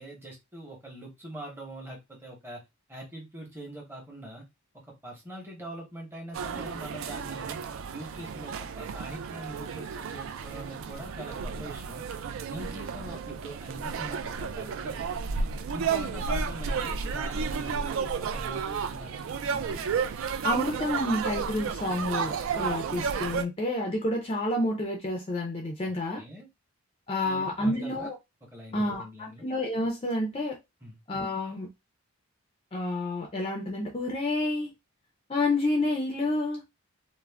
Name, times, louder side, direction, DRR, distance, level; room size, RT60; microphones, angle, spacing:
voice 1, 0.0-2.6 2.9-4.5 4.7-7.6 7.9-12.0 12.4-15.1 15.7-19.8 26.2-26.5 27.2-28.1 28.5-29.5 30.8-31.0, right 1 dB, 10° right, 0.8 m, -43 dB
sound 1, 6.3-23.5, right 6 dB, 60° right, 0.3 m, -32 dB
voice 2, 20.4-26.2 27.1-28.1 28.7-30.6 31.1-31.7 32.7-34.7 35.3-36.6, left 1 dB, 25° left, 0.4 m, -29 dB
2.4 x 2.0 x 3.3 m
head